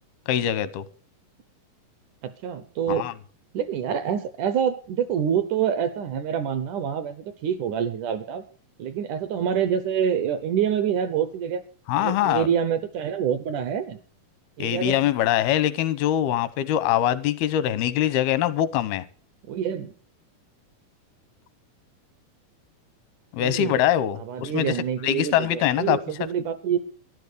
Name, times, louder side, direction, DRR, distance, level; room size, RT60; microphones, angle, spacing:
voice 1, 0.3-0.8 2.9-3.1 11.9-12.5 14.6-19.0 23.3-24.7 25.0-26.0, left 11 dB, 85° left, 16 dB, 2.8 m, -23 dB
voice 2, 2.2-3.1 3.5-8.4 8.8-11.6 12.0-14.0 14.6-15.0 19.5-19.9 23.4-23.8 24.2-26.8, right 8 dB, 75° right, 13 dB, 1.9 m, -26 dB
13.0 x 11.0 x 6.7 m, 0.43 s
omnidirectional pair, 4.3 m